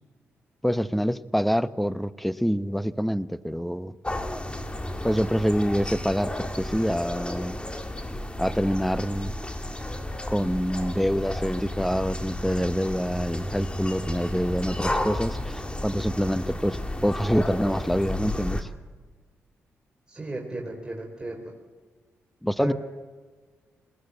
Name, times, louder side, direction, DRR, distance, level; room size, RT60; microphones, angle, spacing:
voice 1, 0.6-3.9 5.0-7.6 8.4-9.3 10.3-18.7 22.4-22.7, equal, ahead, 15 dB, 0.9 m, -26 dB
sound 1, 4.0-18.6, left 1 dB, 20° left, 2.4 m, -32 dB
voice 2, 20.1-21.5 22.6-22.7, right 1 dB, 15° right, 0 dB, 4.1 m, -34 dB
20.5 x 18.0 x 8.1 m, 1.4 s
supercardioid pair, 50°, 6 cm